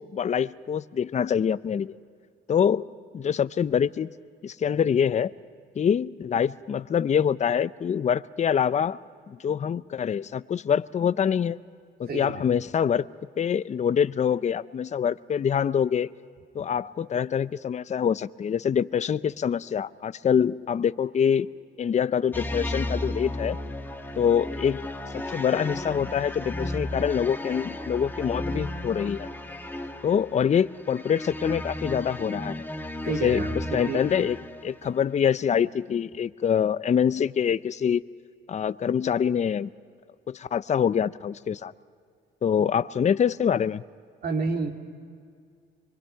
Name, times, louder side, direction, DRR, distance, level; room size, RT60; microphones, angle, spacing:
voice 1, 0.0-2.0 2.5-2.9 3.1-4.1 4.4-5.3 5.8-9.0 9.3-11.6 12.0-13.1 13.4-16.1 16.5-21.5 21.8-23.6 24.2-24.9 25.1-29.3 30.0-32.6 33.1-33.4 33.7-34.4 34.6-38.0 38.5-39.7 40.3-41.7 42.4-43.8, left 8 dB, 35° left, 15 dB, 0.5 m, -25 dB
voice 2, 12.1-12.4 33.0-34.0 44.2-44.7, right 4 dB, 50° right, 3 dB, 2.7 m, -29 dB
sound 1, 22.3-34.9, left 1 dB, 10° left, 1.4 m, -34 dB
25.0 x 23.0 x 5.7 m, 2.2 s
cardioid pair, 90°, 20 cm